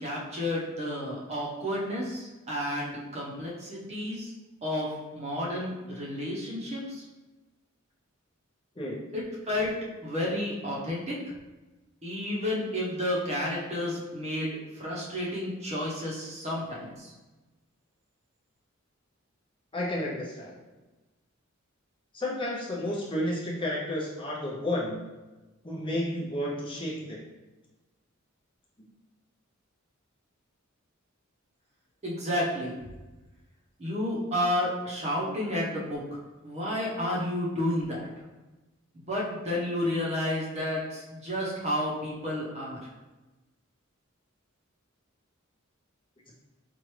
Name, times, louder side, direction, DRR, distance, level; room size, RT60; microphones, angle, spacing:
voice 1, 0.0-4.3 4.6-7.0 9.1-9.7 10.0-11.2 12.0-17.1 32.0-32.7 33.8-36.0 36.4-38.1 38.9-42.9, left 1 dB, 30° right, -4 dB, 0.9 m, -31 dB
voice 2, 19.7-20.6 22.1-25.0 25.6-27.2, left 1 dB, 25° left, -4 dB, 0.7 m, -31 dB
4.5 x 2.5 x 3.1 m, 1.1 s
head